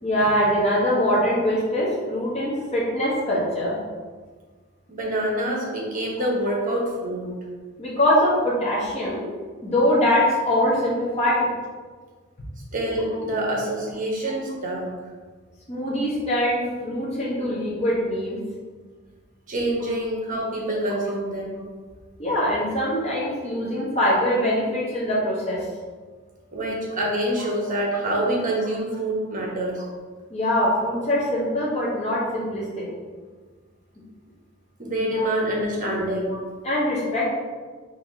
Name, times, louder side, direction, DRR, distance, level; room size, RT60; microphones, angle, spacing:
voice 1, 0.0-3.8 7.8-9.2 9.6-11.5 15.7-18.4 19.8-19.9 22.2-25.6 30.3-32.9 35.1-35.3 36.6-37.3, left 1 dB, 30° left, -7 dB, 1.1 m, -23 dB
voice 2, 4.9-7.3 12.7-14.9 19.5-21.6 26.5-29.8 34.8-36.3, right 1 dB, 40° right, -2 dB, 1.1 m, -26 dB
4.6 x 3.1 x 3.8 m, 1.4 s
head